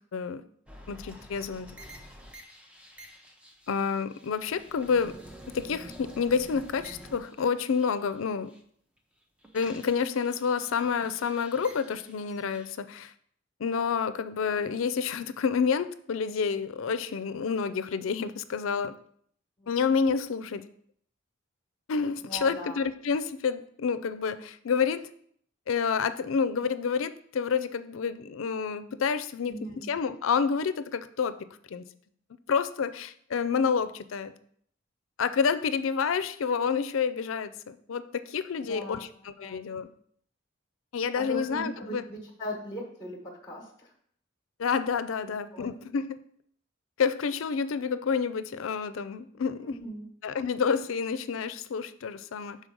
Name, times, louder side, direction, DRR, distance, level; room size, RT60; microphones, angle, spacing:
voice 1, 0.1-0.4 0.9-1.7 3.7-5.1 5.5-8.5 9.5-13.1 13.6-18.9 19.7-20.6 21.9-25.0 25.7-29.5 29.9-31.4 31.7-31.8 32.5-34.3 35.2-39.1 39.4-39.9 40.9-42.0 44.6-46.2 47.0-49.7 50.2-52.6, left 6 dB, 80° left, 13 dB, 0.4 m, -29 dB
sound 1, 0.7-8.6 9.0-12.7, equal, 5° right, 0.6 m, -49 dB
voice 2, 22.2-22.8 29.5-29.8 38.7-39.1 39.4-39.6 41.2-43.9 45.2-45.7 49.6-50.1, equal, 20° left, -1 dB, 1.1 m, -39 dB
6.2 x 4.0 x 5.2 m, 0.64 s
head